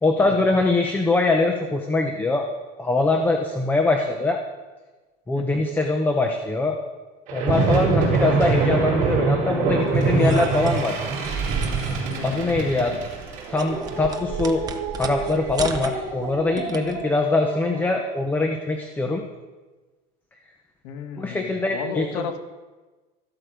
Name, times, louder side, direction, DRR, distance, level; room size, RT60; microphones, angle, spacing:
voice 1, 0.0-2.5 2.8-4.4 5.3-6.8 7.3-11.0 12.2-12.9 13.5-14.6 15.0-19.2 21.2-22.3, left 3 dB, 10° left, 4 dB, 0.8 m, -23 dB
voice 2, 5.3-5.7 12.2-12.4 20.8-22.4, left 6 dB, 70° left, 6 dB, 1.7 m, -33 dB
sound 1, 7.3-17.9, right 4 dB, 40° right, 3.9 m, -25 dB
sound 2, 9.9-17.0, right 5 dB, 20° right, 0.9 m, -34 dB
13.5 x 12.5 x 5.1 m, 1.2 s
cardioid pair, 165°, 21 cm